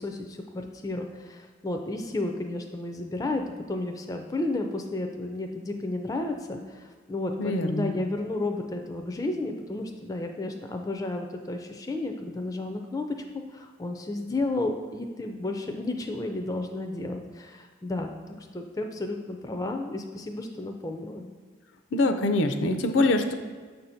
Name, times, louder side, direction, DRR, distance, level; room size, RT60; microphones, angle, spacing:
voice 1, 0.0-13.1 13.5-21.3, left 2 dB, 20° left, 3 dB, 0.3 m, -32 dB
voice 2, 7.4-7.9 21.9-23.3, left 2 dB, 80° left, 7 dB, 0.5 m, -24 dB
6.7 x 2.6 x 5.6 m, 1.5 s
head